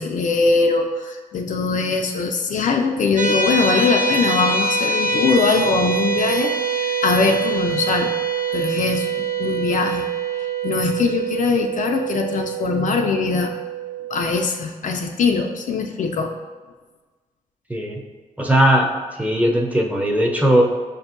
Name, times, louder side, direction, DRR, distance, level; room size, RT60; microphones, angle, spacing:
voice 1, 0.0-8.1 8.5-10.1 10.6-13.5 14.1-16.3, left 4 dB, 55° left, 3 dB, 0.4 m, -21 dB
sound 1, 3.2-14.3, right 5 dB, 60° right, 0.4 m, -24 dB
voice 2, 17.7-18.0 18.4-18.9 19.2-20.6, right 1 dB, 10° right, 1 dB, 0.6 m, -18 dB
5.3 x 2.6 x 2.5 m, 1.3 s
supercardioid pair, 45°, 15 cm